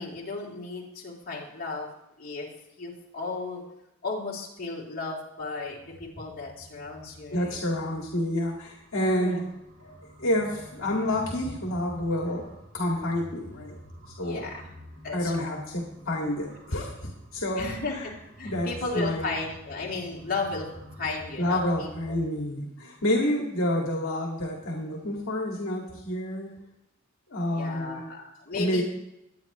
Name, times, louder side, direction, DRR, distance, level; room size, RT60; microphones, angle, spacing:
voice 1, 0.0-1.9 2.2-2.5 2.8-3.6 4.0-7.6 8.9-9.5 14.2-14.7 15.0-15.5 17.6-20.7 21.0-22.2 22.8-22.9 27.5-28.8, left 3 dB, 45° left, -4 dB, 3.2 m, -35 dB
sound 1, 5.6-22.2, equal, 45° right, 3.3 m, -48 dB
voice 2, 7.3-9.4 9.8-12.5 12.7-13.8 14.2-14.5 15.1-18.1 18.4-19.4 21.4-26.5 27.3-28.1 28.6-28.8, left 1 dB, 70° left, 0 dB, 2.0 m, -29 dB
21.5 x 9.2 x 3.1 m, 0.89 s
head